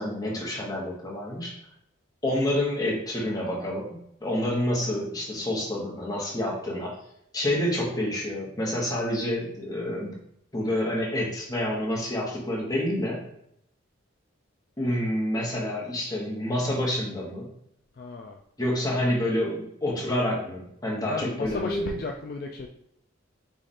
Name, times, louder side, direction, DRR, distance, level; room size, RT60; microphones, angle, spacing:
voice 1, 0.0-1.6 2.2-3.9 4.2-7.0 7.3-10.1 10.5-13.2 14.8-17.5 18.6-21.9, left 1 dB, 20° left, -3 dB, 1.0 m, -28 dB
voice 2, 17.9-18.4 21.1-22.7, left 4 dB, 50° left, 1 dB, 0.3 m, -34 dB
4.7 x 2.5 x 4.1 m, 0.74 s
head